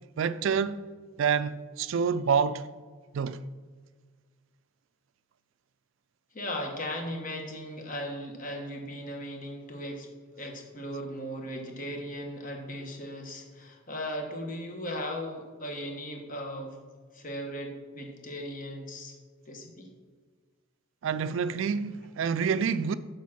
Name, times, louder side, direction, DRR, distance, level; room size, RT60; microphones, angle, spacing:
voice 1, 0.2-0.8 1.2-2.6 3.1-3.4 21.0-23.0, right 6 dB, 65° right, 0.3 m, -27 dB
voice 2, 6.3-10.1 10.4-16.8 17.1-19.2 19.5-19.9, equal, 40° left, 1.3 m, -37 dB
7.2 x 5.0 x 5.9 m
head